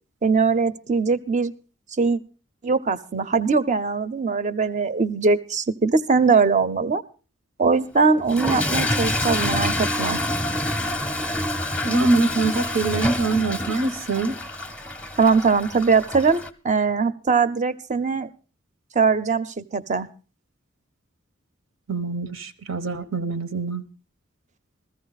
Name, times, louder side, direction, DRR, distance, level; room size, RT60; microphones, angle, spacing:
voice 1, 0.2-1.5 2.0-2.2 2.6-7.0 7.6-10.2 15.2-18.3 18.9-20.1, right 4 dB, 35° right, 0.6 m, -21 dB
Toilet flush / Fill (with liquid), 8.2-16.5, left 1 dB, 5° left, 0.7 m, -27 dB
voice 2, 11.8-14.4 21.9-23.8, right 3 dB, 90° right, 1.1 m, -23 dB
15.0 x 14.5 x 4.0 m
head